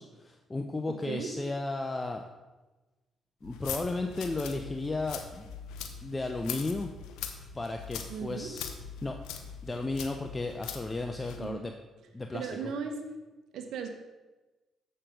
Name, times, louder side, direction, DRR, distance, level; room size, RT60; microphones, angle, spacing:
voice 1, 0.0-2.2 3.4-5.5 6.0-6.9 7.5-8.7 9.0-9.2 9.6-11.7 12.1-12.7, left 2 dB, 20° left, 4 dB, 0.7 m, -34 dB
voice 2, 0.9-1.3 8.1-8.5 11.4-11.7 12.3-13.0 13.5-14.0, right 6 dB, 75° right, 5 dB, 1.2 m, -37 dB
sound 1, 3.4-11.4, left 7 dB, 85° left, 0.9 m, -42 dB
7.5 x 6.6 x 5.2 m, 1.1 s
supercardioid pair, 70°, 0 cm